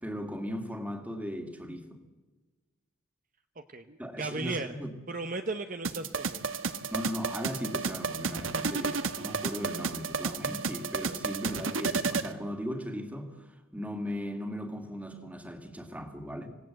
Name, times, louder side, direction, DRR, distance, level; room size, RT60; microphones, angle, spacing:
voice 1, 0.0-2.0 4.0-4.9 6.9-13.5 13.7-16.5, equal, 5° right, 6 dB, 2.3 m, -37 dB
voice 2, 3.7-4.8 5.1-6.5, right 3 dB, 40° right, 7 dB, 1.0 m, -36 dB
sound 1, 5.8-12.3, right 4 dB, 70° right, 1.3 m, -32 dB
26.5 x 17.5 x 7.8 m, 1.3 s
head